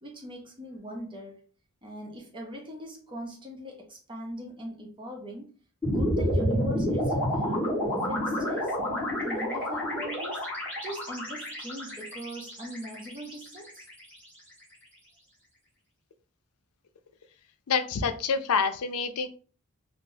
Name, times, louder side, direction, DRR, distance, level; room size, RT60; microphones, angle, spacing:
voice 1, 0.0-1.4 1.8-5.5 5.9-8.8 9.2-10.5 10.8-13.9, equal, 20° right, 0.7 m, -40 dB
sound 1, 5.8-14.1, equal, 5° left, 1.4 m, -29 dB
voice 2, 17.7-19.3, left 5 dB, 85° left, 0.4 m, -27 dB
2.9 x 2.0 x 3.8 m
head